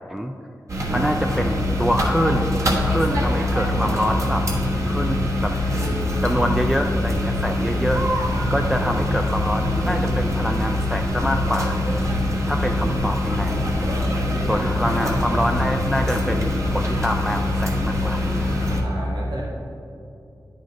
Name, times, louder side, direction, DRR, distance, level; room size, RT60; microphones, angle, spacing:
sound 1, 0.7-18.8, left 1 dB, 45° right, 1.2 m, -23 dB
voice 1, 0.9-2.5 2.8-4.5 4.8-5.6 6.2-8.0 8.5-11.8 12.5-13.5 14.4-18.2, equal, 5° right, 3 dB, 0.3 m, -25 dB
voice 2, 14.4-15.4 18.8-19.4, right 1 dB, 75° right, -5 dB, 1.3 m, -33 dB
9.2 x 5.0 x 3.9 m, 2.5 s
wide cardioid pair, 70°, 8 cm